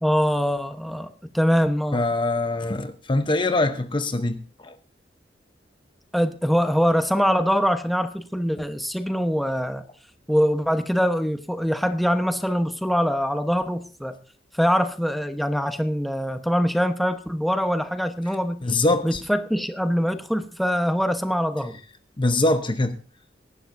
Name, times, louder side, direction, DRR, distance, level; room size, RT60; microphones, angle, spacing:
voice 1, 0.0-2.0 6.1-9.8 10.3-14.2 14.5-18.6 19.0-21.8, equal, ahead, 1.0 m, -23 dB
voice 2, 1.9-4.7 18.6-19.2 22.2-23.0, left 2 dB, 25° left, 0.8 m, -23 dB
23.0 x 11.5 x 2.7 m
head